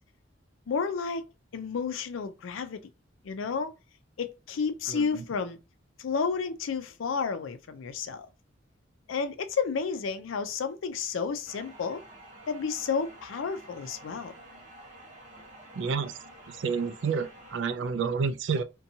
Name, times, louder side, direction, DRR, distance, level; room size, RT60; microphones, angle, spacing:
voice 1, 0.7-1.2 1.5-2.8 3.2-3.7 4.2-5.6 6.0-8.3 9.1-12.0 12.5-14.3, left 5 dB, 80° left, 0.4 m, -31 dB
voice 2, 4.9-5.2 15.8-16.2 16.5-18.6, right 5 dB, 65° right, 0.3 m, -30 dB
sound 1, 11.5-17.6, right 1 dB, 40° right, 0.7 m, -50 dB
2.6 x 2.2 x 2.7 m
head